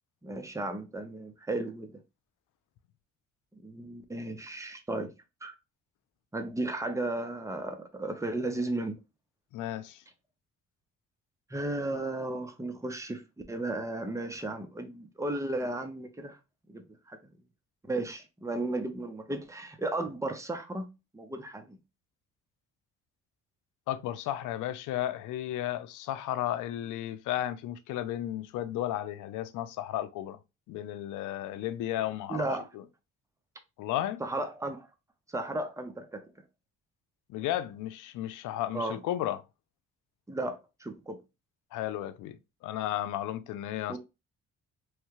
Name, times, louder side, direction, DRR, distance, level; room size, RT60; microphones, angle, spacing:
voice 1, 0.2-1.9 3.6-5.1 5.4-5.5 6.3-9.0 11.5-13.2 13.5-16.4 16.7-17.2 17.9-20.9 21.1-21.8 32.3-32.7 34.2-34.9 35.3-36.2 38.7-39.0 40.3-41.2 43.9-44.0, right 2 dB, 10° right, 0.7 m, -34 dB
voice 2, 9.5-10.0 23.9-30.4 30.7-32.4 32.7-32.8 33.8-34.2 37.3-39.4 41.7-42.4 42.6-44.0, left 12 dB, 85° left, 0.5 m, -33 dB
3.1 x 2.3 x 3.0 m
cardioid pair, 90°, 30 cm